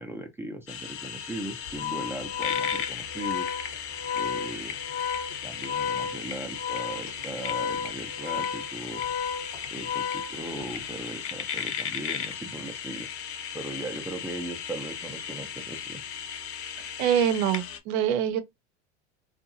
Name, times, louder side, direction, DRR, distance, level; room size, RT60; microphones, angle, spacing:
voice 1, 0.0-3.5 4.1-4.8 5.4-9.0 9.7-13.1 13.5-16.0, right 2 dB, 5° right, 0.5 m, -38 dB
sound 1, 0.7-17.8, left 8 dB, 40° left, 0.6 m, -36 dB
Organ, 1.7-10.8, left 7 dB, 65° left, 1.1 m, -33 dB
voice 2, 17.0-18.4, right 9 dB, 55° right, 0.7 m, -24 dB
2.6 x 2.5 x 2.6 m
hypercardioid pair, 80°, 36 cm